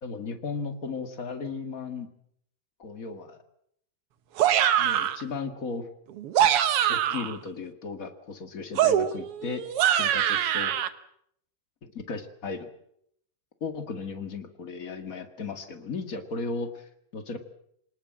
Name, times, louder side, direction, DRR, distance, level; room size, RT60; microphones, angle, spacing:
voice 1, 0.0-2.1 2.8-3.4 4.8-5.9 6.9-10.7 11.8-12.7 13.6-17.4, left 4 dB, 35° left, 7 dB, 1.7 m, -36 dB
sound 1, 4.4-5.2 6.2-7.4 8.8-10.9, right 10 dB, 65° right, 1.4 m, -23 dB
26.5 x 19.0 x 7.6 m, 0.70 s
omnidirectional pair, 3.9 m